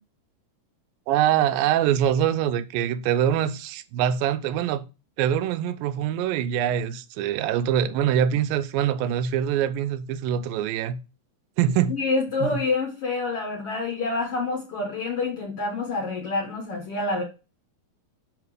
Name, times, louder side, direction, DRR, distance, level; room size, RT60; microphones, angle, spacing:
voice 1, 1.1-4.8 5.2-11.0 11.6-11.9 12.4-12.6, right 10 dB, 80° right, 2.2 m, -24 dB
voice 2, 11.9-17.2, left 3 dB, 65° left, 1.5 m, -27 dB
5.7 x 5.2 x 4.8 m
omnidirectional pair, 4.2 m